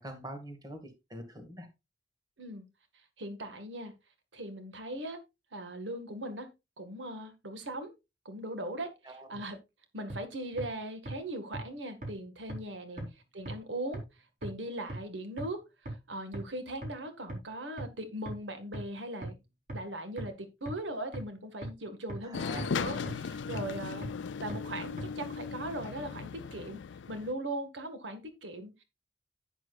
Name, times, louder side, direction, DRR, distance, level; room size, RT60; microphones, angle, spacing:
voice 1, 0.0-1.7 9.1-9.3 12.9-13.1 22.2-22.7, right 1 dB, 20° right, 5 dB, 2.1 m, -44 dB
voice 2, 3.2-3.9 4.3-5.2 5.5-6.5 6.8-7.9 8.3-9.6 9.9-13.0 13.3-14.0 14.4-19.4 19.7-24.1 24.4-26.8 27.1-28.8, right 1 dB, 90° right, 8 dB, 1.9 m, -39 dB
sound 1, 10.1-10.2 10.6-10.7 11.1-11.2 11.5-11.6 12.0-12.1 12.5-12.6 13.0-13.1 13.5-13.6 13.9-14.0 14.4-14.5 14.9-15.0 15.4-15.5 15.9-16.0 16.3-16.4 16.8-16.9 17.3-17.4 17.8-17.9 18.3-18.4 18.7-18.8 19.2-19.3 19.7-19.8 20.2-20.3 20.7-20.8 21.1-21.2 21.6-21.7 22.1-22.2 22.6-22.7 23.1-23.2 23.5-23.6 24.0-24.1 24.5-24.6 25.0-25.1, right 1 dB, 50° right, 4.5 m, -37 dB
sound 2, 22.3-27.3, left 6 dB, 80° left, 0.4 m, -37 dB
10.5 x 9.1 x 2.5 m, 0.24 s
head